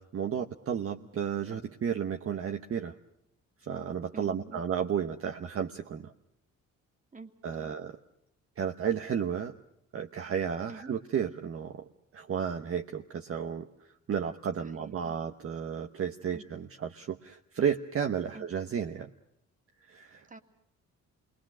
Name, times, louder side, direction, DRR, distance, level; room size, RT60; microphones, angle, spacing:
voice 1, 0.0-2.9 3.7-6.1 7.4-7.9 8.6-9.5 9.9-13.7 14.1-19.1 19.9-20.3, right 8 dB, 50° right, 5 dB, 1.0 m, -33 dB
voice 2, 4.1-4.6 7.1-7.8 10.7-10.9 14.6-15.2 16.3-16.5 18.3-18.5 20.3-20.4, right 3 dB, 25° right, 6 dB, 2.3 m, -48 dB
27.5 x 22.0 x 6.2 m, 0.81 s
cardioid pair, 90°, 30 cm